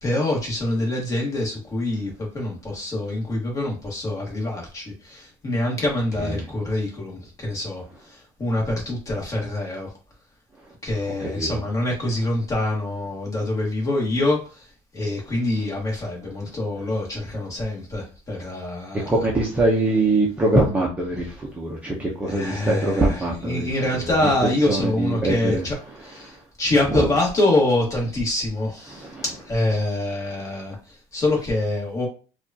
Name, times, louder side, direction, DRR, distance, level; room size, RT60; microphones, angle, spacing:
voice 1, 0.0-9.9 10.8-14.7 14.9-19.1 22.3-32.1, left 1 dB, 25° left, -1 dB, 1.5 m, -25 dB
voice 2, 19.1-24.3 24.7-25.6 26.2-26.3 26.9-27.1 28.9-29.2, right 2 dB, 10° right, -3 dB, 0.6 m, -23 dB
4.7 x 2.4 x 2.8 m, 0.34 s
cardioid pair, 165°, 14 cm